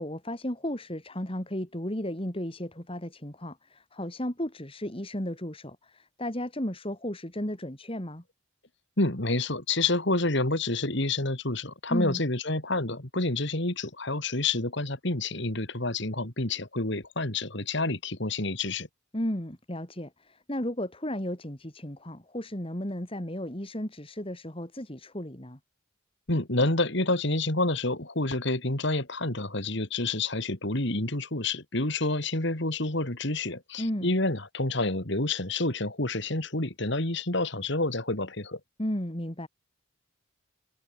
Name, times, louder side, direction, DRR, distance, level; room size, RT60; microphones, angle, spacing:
voice 1, 0.0-8.2 11.9-12.2 19.1-25.6 33.8-34.1 38.8-39.5, left 1 dB, 25° left, 2.7 m, -34 dB
voice 2, 9.0-18.9 26.3-38.6, left 2 dB, 55° left, 2.9 m, -28 dB
head